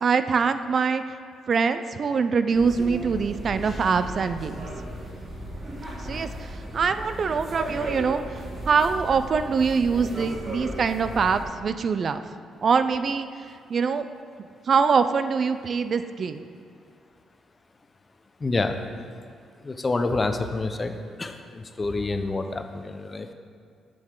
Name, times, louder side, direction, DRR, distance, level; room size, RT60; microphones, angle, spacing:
voice 1, 0.0-1.0 1.5-4.7 6.0-8.4 8.7-12.2 12.6-13.3 13.7-14.1 14.7-16.4, right 5 dB, 50° right, 10 dB, 0.3 m, -24 dB
sound 1, 2.5-11.4, right 1 dB, 30° right, 1.9 m, -36 dB
voice 2, 18.4-18.8 19.6-20.9 21.2-23.3, left 3 dB, 30° left, 7 dB, 0.5 m, -27 dB
7.5 x 6.5 x 3.7 m, 2.3 s
cardioid pair, 90°, 0 cm